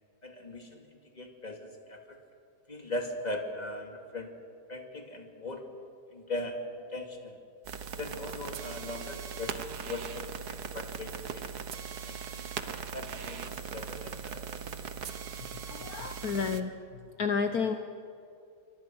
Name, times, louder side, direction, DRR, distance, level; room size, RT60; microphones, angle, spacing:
voice 1, 0.2-2.2 2.7-4.4 4.7-5.6 6.1-7.4 8.0-11.5 11.9-12.5 12.9-14.6, left 2 dB, 25° left, 2 dB, 2.6 m, -40 dB
sound 1, 7.6-16.6, right 7 dB, 65° right, 1.6 m, -39 dB
voice 2, 15.7-16.7 17.2-17.7, left 5 dB, 65° left, 7 dB, 1.4 m, -30 dB
28.0 x 24.5 x 6.2 m, 2.6 s
omnidirectional pair, 1.8 m